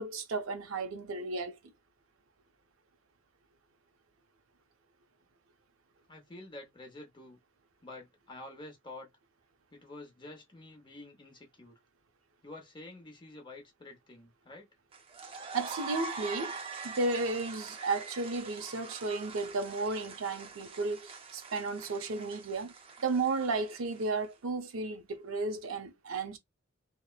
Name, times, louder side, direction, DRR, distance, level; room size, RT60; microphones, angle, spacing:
voice 1, 0.0-1.6 15.5-16.5 16.8-22.7 23.0-26.4, right 3 dB, 85° right, 0.6 m, -33 dB
voice 2, 6.1-7.4 7.8-9.1 9.7-11.8 12.4-14.7, left 2 dB, 25° left, 0.7 m, -48 dB
sound 1, 14.9-24.2, right 4 dB, 25° right, 0.4 m, -44 dB
2.9 x 2.0 x 2.2 m
head